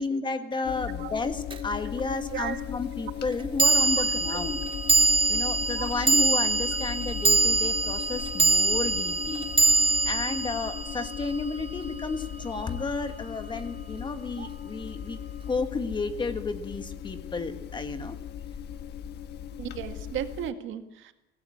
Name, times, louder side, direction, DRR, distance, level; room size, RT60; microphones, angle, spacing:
voice 1, 0.0-4.6 5.3-9.5 9.8-15.2 15.5-18.2, left 3 dB, 25° left, 8 dB, 1.7 m, -32 dB
sound 1, 0.6-20.5, left 9 dB, 55° left, 1.3 m, -38 dB
sound 2, 1.5-1.6 3.6-12.0, right 3 dB, 25° right, 1.9 m, -24 dB
voice 2, 19.6-21.1, right 10 dB, 75° right, 8 dB, 1.9 m, -35 dB
23.0 x 17.0 x 8.6 m, 0.91 s
cardioid pair, 155°, 20 cm